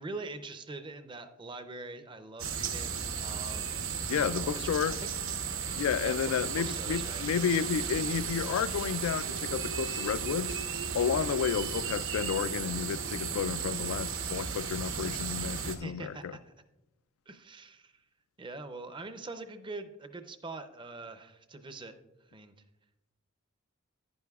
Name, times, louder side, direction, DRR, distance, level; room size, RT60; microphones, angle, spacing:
voice 1, 0.0-3.7 4.1-5.1 6.0-7.2 15.8-16.5 17.3-18.0 18.4-21.9 22.3-22.5, right 3 dB, 25° right, 0.5 m, -43 dB
sound 1, 2.4-15.8, right 6 dB, 65° right, 0.9 m, -35 dB
voice 2, 4.1-5.0 5.8-10.6 10.9-16.3, left 7 dB, 80° left, 0.3 m, -31 dB
10.5 x 10.0 x 2.3 m
head